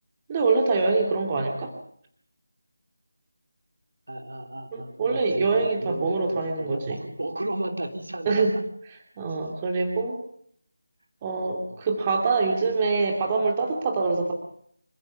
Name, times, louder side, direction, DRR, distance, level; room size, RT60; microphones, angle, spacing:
voice 1, 0.3-1.7 4.7-7.0 8.3-8.5 9.2-10.2 11.2-14.3, right 3 dB, 20° right, 2 dB, 2.5 m, -24 dB
voice 2, 4.1-8.4 11.7-11.8, right 1 dB, 60° right, 4 dB, 3.6 m, -33 dB
26.0 x 14.5 x 7.1 m, 0.65 s
figure-of-eight pair, 160°, 0 cm